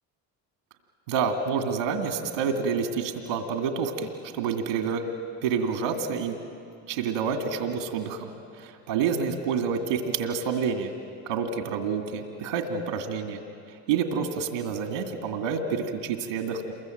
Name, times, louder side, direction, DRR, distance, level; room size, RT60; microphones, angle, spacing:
voice 1, 1.1-5.0 5.4-6.4 6.9-10.9 11.2-13.4 13.9-16.7, right 6 dB, 90° right, 5 dB, 2.3 m, -28 dB
28.0 x 23.0 x 7.9 m, 2.4 s
hypercardioid pair, 60°, 46 cm